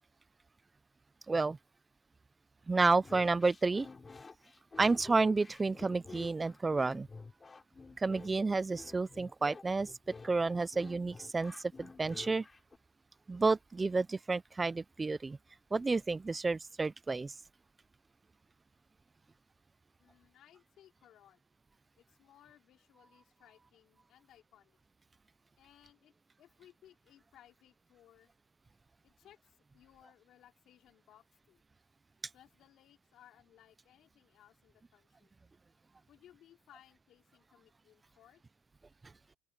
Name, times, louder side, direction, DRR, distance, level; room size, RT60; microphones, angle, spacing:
voice 1, 1.3-1.6 2.7-3.9 4.8-7.1 8.0-9.9 10.2-12.5 13.3-15.4 15.7-17.3, right 3 dB, 10° right, 0.3 m, -30 dB
sound 1, 3.0-12.8, left 4 dB, 15° left, 4.7 m, -50 dB
voice 2, 20.0-21.4 22.0-24.8 25.6-26.1 26.4-28.3 29.0-31.6 32.3-35.3 36.1-38.4, left 11 dB, 40° left, 4.5 m, -63 dB
open air
cardioid pair, 150°, 0 cm